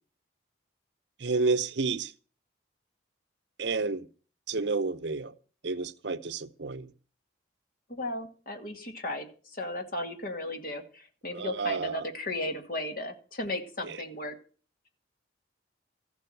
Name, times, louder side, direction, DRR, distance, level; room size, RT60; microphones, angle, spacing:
voice 1, 1.2-2.1 3.6-4.1 4.5-5.3 5.6-6.9 11.3-12.1 13.8-14.0, right 4 dB, 65° right, 0.8 m, -30 dB
voice 2, 7.9-14.3, left 1 dB, 45° left, 2.1 m, -35 dB
14.5 x 7.4 x 7.8 m
head